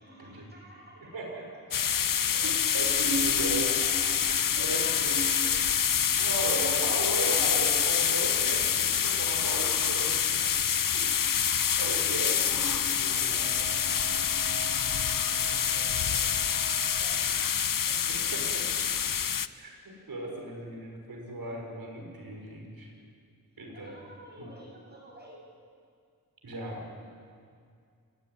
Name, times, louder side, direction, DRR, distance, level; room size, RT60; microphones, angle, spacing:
voice 1, 0.0-1.3 1.7-2.1 2.9-3.1 3.4-5.6 6.2-7.4 13.1-17.6 17.9-18.5 23.7-25.4, right 1 dB, 30° right, -2 dB, 7.8 m, -50 dB
sound 1, 1.7-19.5, left 8 dB, 70° left, 0.7 m, -26 dB
voice 2, 2.3-3.7 4.3-5.3 6.1-10.5 10.9-11.1 11.8-13.5 18.1-18.6 19.5-22.9 23.6-23.9 26.4-26.9, right 2 dB, 85° right, 0 dB, 6.1 m, -36 dB
Wind instrument woodwind instrument, 13.4-17.3, right 2 dB, 25° left, 4.3 m, -46 dB
29.0 x 15.5 x 9.5 m, 2.2 s
wide cardioid pair, 65°, 35 cm